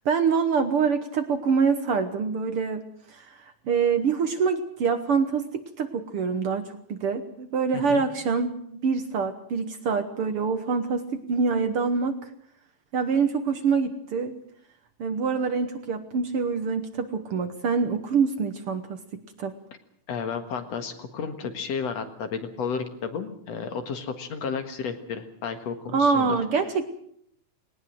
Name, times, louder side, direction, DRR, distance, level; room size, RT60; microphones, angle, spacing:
voice 1, 0.1-12.2 12.9-14.4 15.0-19.6 25.9-26.9, right 5 dB, 60° right, 9 dB, 1.8 m, -25 dB
voice 2, 20.1-26.4, left 6 dB, 60° left, 7 dB, 2.7 m, -32 dB
19.5 x 19.0 x 7.8 m, 0.67 s
omnidirectional pair, 3.4 m